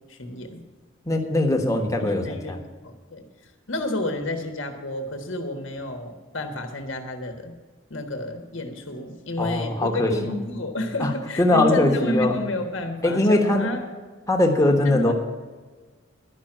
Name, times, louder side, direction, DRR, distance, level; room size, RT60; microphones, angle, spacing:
voice 1, 0.1-0.6 2.0-3.2 3.7-7.5 7.9-13.8 14.8-15.1, left 1 dB, 65° left, 5 dB, 1.4 m, -30 dB
voice 2, 1.1-2.6 9.4-10.3 11.0-11.1 11.4-12.3 13.0-13.7 14.3-15.1, left 1 dB, 15° left, 2 dB, 1.3 m, -21 dB
11.5 x 6.0 x 8.9 m, 1.4 s
head